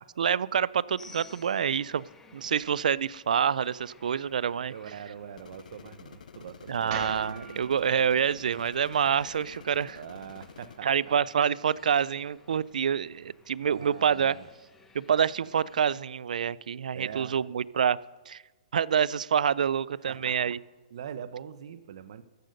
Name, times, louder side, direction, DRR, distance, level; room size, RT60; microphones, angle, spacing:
voice 1, 0.2-2.0 2.3-4.7 6.7-10.0 10.8-14.4 14.9-18.0 18.3-18.4 18.7-20.6, right 8 dB, 80° right, 22 dB, 0.3 m, -27 dB
sound 1, 1.0-15.8, left 4 dB, 5° left, 0.7 m, -57 dB
voice 2, 4.7-7.0 9.8-11.2 13.6-14.5 16.9-17.4 20.1-20.6 20.9-22.2, right 8 dB, 45° right, 14 dB, 0.7 m, -43 dB
sound 2, 5.4-10.8, left 6 dB, 80° left, 0.6 m, -50 dB
sound 3, 6.9-11.1, right 5 dB, 30° right, 1.9 m, -44 dB
13.5 x 7.9 x 6.4 m, 1.2 s
hypercardioid pair, 170°, 4 cm